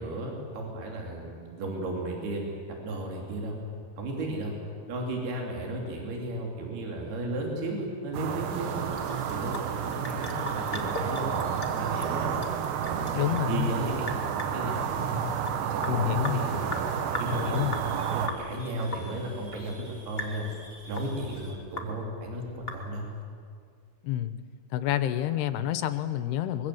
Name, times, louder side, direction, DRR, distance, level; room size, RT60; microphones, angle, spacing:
voice 1, 0.0-3.6 4.0-4.5 4.9-8.9 9.3-12.4 12.8-15.3 15.7-16.8 17.2-20.5 20.9-23.1, right 2 dB, 70° right, 0 dB, 5.0 m, -34 dB
sound 1, 8.1-18.3, right 8 dB, 90° right, 3.4 m, -31 dB
sound 2, 8.5-15.9 16.1-21.5, right 1 dB, 35° right, 6.3 m, -52 dB
Sink (filling or washing) / Drip, 8.7-23.2, left 2 dB, 50° left, 0.7 m, -40 dB
voice 2, 13.1-13.7 15.1-15.3 15.9-16.4 17.3-17.8 24.0-24.3 24.7-26.7, left 12 dB, 80° left, 11 dB, 2.8 m, -28 dB
25.0 x 22.5 x 7.8 m, 2.1 s
omnidirectional pair, 4.8 m